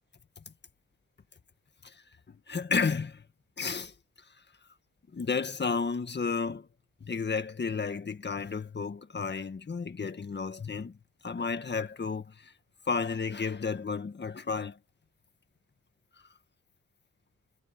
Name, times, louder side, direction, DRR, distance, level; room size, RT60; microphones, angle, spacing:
voice 1, 2.5-3.2 3.6-3.9 5.1-6.7 7.0-11.0 11.2-12.5 12.9-14.8, left 5 dB, 35° left, 1.8 m, -32 dB
wide cardioid pair, 110°, 30 cm